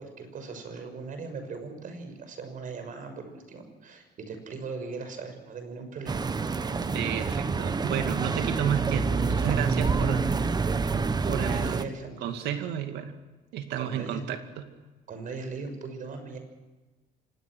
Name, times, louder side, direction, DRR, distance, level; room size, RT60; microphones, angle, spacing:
voice 1, 0.0-6.2 6.5-6.8 11.2-12.3 12.6-12.7 13.8-14.2 15.1-16.4, right 4 dB, 50° right, 7 dB, 6.2 m, -39 dB
sound 1, 6.1-11.8, right 4 dB, 25° right, 1.1 m, -27 dB
voice 2, 6.9-10.3 11.3-11.9 12.2-13.1 13.5-14.7, right 9 dB, 80° right, 7 dB, 2.4 m, -31 dB
25.5 x 20.0 x 6.3 m, 1.2 s
cardioid pair, 110°, 17 cm